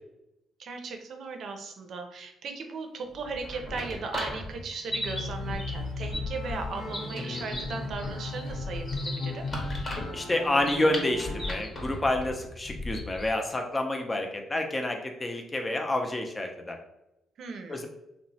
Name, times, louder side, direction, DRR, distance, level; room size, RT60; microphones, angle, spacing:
voice 1, 0.6-9.5 17.4-17.9, right 4 dB, 65° right, 4 dB, 0.5 m, -37 dB
sound 1, 3.1-13.4, left 1 dB, 35° left, 0.9 m, -37 dB
sound 2, 4.8-11.6, left 2 dB, 85° left, 0.9 m, -36 dB
voice 2, 10.1-16.8 17.7-17.9, left 1 dB, 20° left, 3 dB, 0.4 m, -29 dB
2.9 x 2.0 x 2.7 m, 0.87 s
cardioid pair, 90°, 0 cm